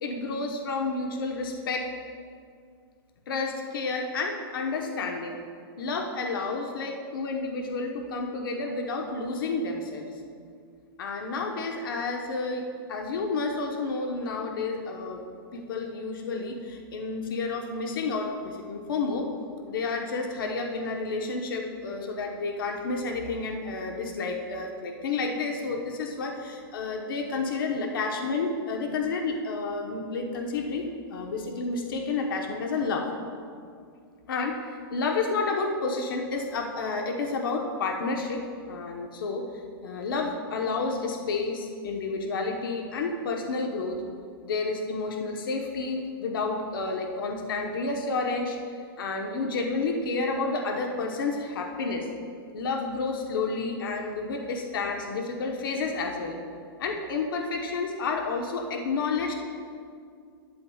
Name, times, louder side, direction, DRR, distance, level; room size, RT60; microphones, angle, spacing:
voice 1, 0.0-1.9 3.3-5.4 5.8-10.1 11.0-15.2 15.5-19.3 19.7-33.1 34.3-39.5 39.8-44.0 44.4-48.6 49.0-52.1 52.5-56.4 56.8-59.3, left 3 dB, 60° left, 2 dB, 1.0 m, -30 dB
12.0 x 11.5 x 2.3 m, 2.2 s
hypercardioid pair, 175°, 13 cm